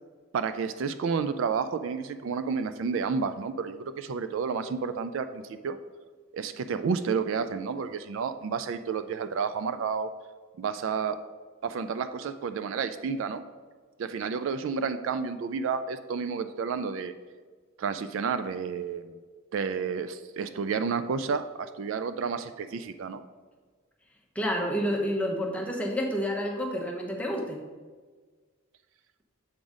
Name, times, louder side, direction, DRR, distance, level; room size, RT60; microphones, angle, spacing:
voice 1, 0.3-5.8 6.3-10.1 10.6-11.2 11.6-13.4 14.0-17.1 17.8-19.0 19.5-23.2, right 5 dB, 65° right, 11 dB, 0.3 m, -30 dB
voice 2, 24.3-27.6, equal, 5° left, 0 dB, 0.8 m, -29 dB
7.2 x 3.9 x 4.9 m, 1.5 s
head